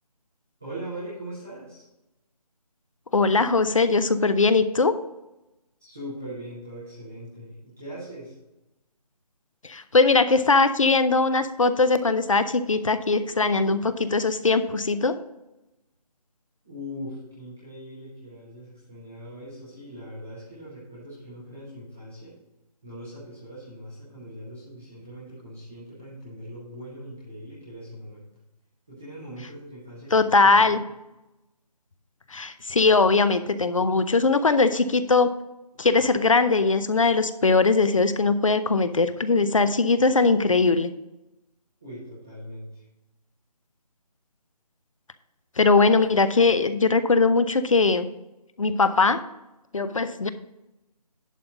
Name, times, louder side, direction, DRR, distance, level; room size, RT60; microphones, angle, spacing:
voice 1, 0.6-1.8 5.8-8.3 16.6-22.3 22.8-28.3 28.9-30.7 41.8-42.8, equal, 5° right, -11 dB, 0.6 m, -40 dB
voice 2, 3.1-4.9 9.6-15.2 30.1-30.8 32.3-35.3 35.8-40.9 45.6-48.1 48.6-49.2 49.7-50.3, left 3 dB, 50° left, 12 dB, 0.7 m, -20 dB
11.0 x 3.9 x 7.0 m, 0.94 s
figure-of-eight pair, 170°, 21 cm